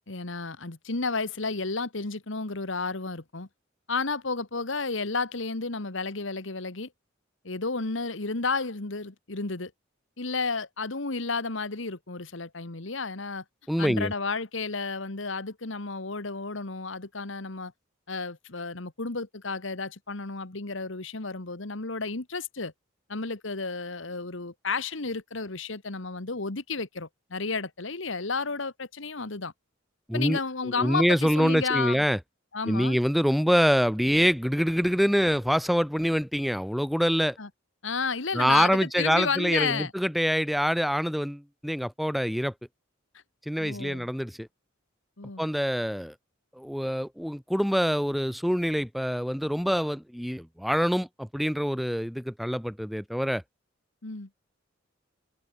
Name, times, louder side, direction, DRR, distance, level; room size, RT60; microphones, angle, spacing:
voice 1, 0.1-3.5 3.9-6.9 7.4-9.7 10.2-13.4 13.8-17.7 18.1-22.7 23.1-29.5 30.1-32.0 32.5-33.0 37.4-37.5 37.8-39.9 43.6-44.1 45.2-45.5 54.0-54.3, left 4 dB, 70° left, 1.7 m, -32 dB
voice 2, 13.7-14.1 30.1-30.4 30.6-32.2 32.7-37.4 38.3-42.5 43.5-44.5 45.4-46.1 46.6-53.4, equal, ahead, 0.7 m, -25 dB
head